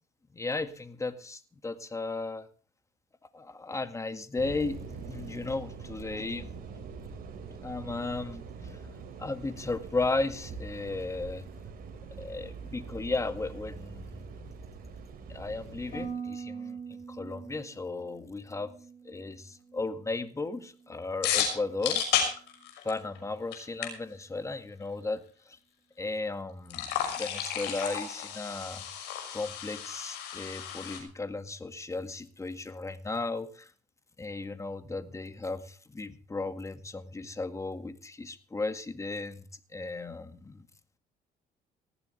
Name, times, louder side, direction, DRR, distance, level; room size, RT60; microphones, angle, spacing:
voice 1, 0.3-2.5 3.3-6.5 7.6-8.8 9.2-11.5 12.2-14.5 15.3-18.7 19.0-22.0 22.8-25.6 26.0-28.8 29.3-33.7 34.2-39.5 39.7-40.7, left 3 dB, 15° left, 10 dB, 1.9 m, -35 dB
sound 1, 4.4-16.1, right 5 dB, 60° right, 5.1 m, -44 dB
Harp, 15.9-20.0 20.3-20.9 21.4-21.7, right 5 dB, 45° left, 7.0 m, -43 dB
sound 2, 21.2-23.2 23.5-23.6 23.8-23.9 26.7-31.0, left 9 dB, 90° left, 6.0 m, -32 dB
19.0 x 15.0 x 3.3 m, 0.39 s
cardioid pair, 110°, 17 cm